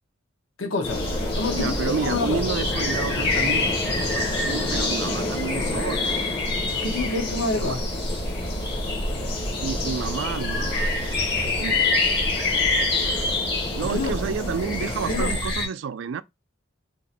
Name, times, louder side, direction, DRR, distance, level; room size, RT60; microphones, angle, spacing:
voice 1, 0.6-1.0 1.3-1.8 2.0-2.4 6.7-7.8 13.8-14.2 15.0-15.3, left 3 dB, 80° left, 0.9 m, -27 dB
sound 1, 0.8-15.7, left 2 dB, 55° left, 1.3 m, -26 dB
sound 2, 0.8-15.4, left 2 dB, 25° left, 0.6 m, -33 dB
voice 2, 1.5-6.3 6.7-7.2 7.5-7.8 9.6-11.2 11.4-11.8 13.0-13.4 13.7-16.2, right 6 dB, 70° right, 0.3 m, -31 dB
2.9 x 2.5 x 4.1 m
head